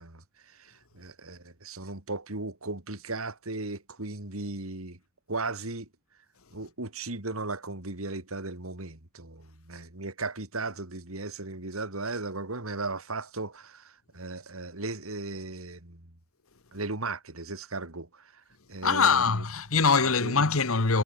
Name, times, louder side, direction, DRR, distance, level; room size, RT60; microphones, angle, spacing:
voice 1, 0.0-5.0 5.3-5.9 6.5-16.1 16.7-18.3 18.7-19.4 20.0-20.4, right 3 dB, 90° right, 3.3 m, -36 dB
voice 2, 18.8-21.0, left 5 dB, 85° left, 1.6 m, -23 dB
head